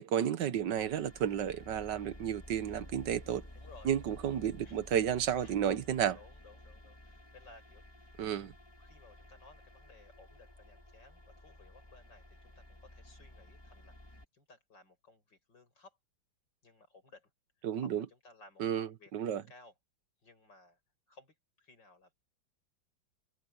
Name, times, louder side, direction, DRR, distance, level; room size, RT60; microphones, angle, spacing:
voice 1, 0.0-3.4 3.8-6.2 8.2-8.5 17.6-18.0 18.6-19.4, right 9 dB, 65° right, 1.6 m, -32 dB
sound 1, 0.5-14.3, left 1 dB, 15° left, 1.7 m, -53 dB
voice 2, 3.5-3.9 4.6-4.8 5.4-5.6 6.1-8.2 8.8-16.0 16.6-17.3 17.6-19.7 20.2-20.8 21.1-22.1, left 3 dB, 65° left, 6.7 m, -59 dB
omnidirectional pair, 2.1 m